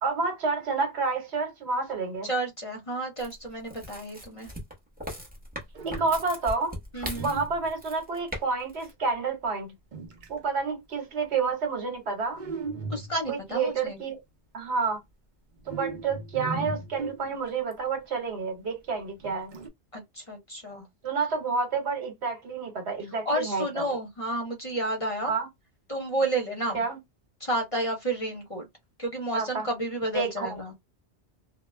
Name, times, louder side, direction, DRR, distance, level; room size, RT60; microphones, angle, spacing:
voice 1, 0.0-2.3 5.9-6.7 7.2-9.7 10.3-12.4 13.3-14.2 14.5-15.0 15.7-19.5 21.0-24.0 25.3-25.5 26.7-27.0 29.3-29.7 30.1-30.6, right 4 dB, 70° right, 1.2 m, -29 dB
voice 2, 2.2-4.5 6.9-7.3 12.9-14.0 19.9-20.9 23.2-25.3 25.9-26.8 27.4-28.7 29.0-30.7, right 1 dB, 35° left, 0.7 m, -31 dB
sound 1, 3.2-8.4 8.7-8.9, equal, 10° right, 0.8 m, -38 dB
sound 2, 5.4-5.5 5.7-6.4 7.1-8.0 9.9-10.4 12.3-13.4 15.6-17.7 19.2-19.7, right 4 dB, 50° right, 0.7 m, -37 dB
2.3 x 2.1 x 3.1 m
omnidirectional pair, 1.1 m